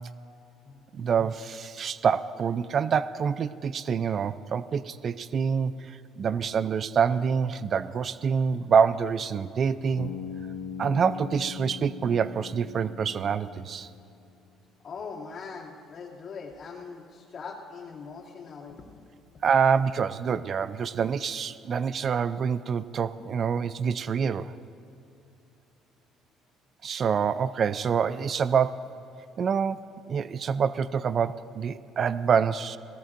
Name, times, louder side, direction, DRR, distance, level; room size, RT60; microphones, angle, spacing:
voice 1, 0.9-10.1 10.8-13.9 19.4-24.5 26.8-28.9 29.4-32.8, right 6 dB, 45° right, 15 dB, 0.4 m, -26 dB
Bass guitar, 10.0-14.0, left 7 dB, 90° left, 1.1 m, -40 dB
voice 2, 14.8-18.8, left 5 dB, 50° left, -3 dB, 2.5 m, -41 dB
18.5 x 18.0 x 2.6 m, 2.7 s
cardioid pair, 95°, 0 cm